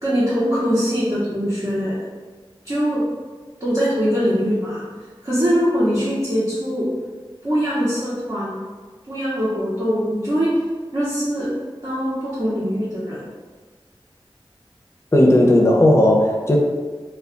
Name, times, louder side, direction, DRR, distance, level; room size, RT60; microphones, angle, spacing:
voice 1, 0.0-2.0 2.6-3.0 3.6-4.8 5.2-6.9 7.4-8.6 9.1-10.5 10.9-11.5 11.8-13.2, equal, 45° right, -10 dB, 0.8 m, -22 dB
voice 2, 15.1-16.6, left 1 dB, 30° left, -1 dB, 0.5 m, -14 dB
2.3 x 2.2 x 3.7 m, 1.4 s
wide cardioid pair, 50°, 9 cm